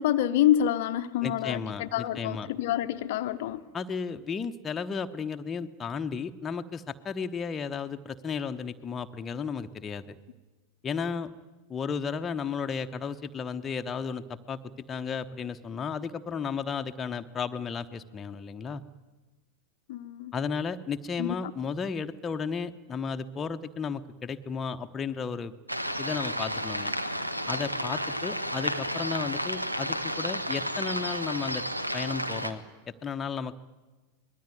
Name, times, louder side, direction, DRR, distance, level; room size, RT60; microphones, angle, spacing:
voice 1, 0.0-3.6 19.9-20.3 21.2-21.4, left 11 dB, 50° left, 10 dB, 0.9 m, -27 dB
voice 2, 1.2-2.5 3.7-10.2 10.8-11.3 11.7-14.6 14.9-18.8 20.3-25.5 26.0-26.9 27.5-31.6 31.9-32.6 33.0-33.6, left 6 dB, 20° left, 7 dB, 1.1 m, -34 dB
sound 1, 25.7-32.5, equal, 85° right, 1.6 m, -32 dB
25.0 x 20.5 x 9.5 m, 1.3 s
figure-of-eight pair, 90°, 0 cm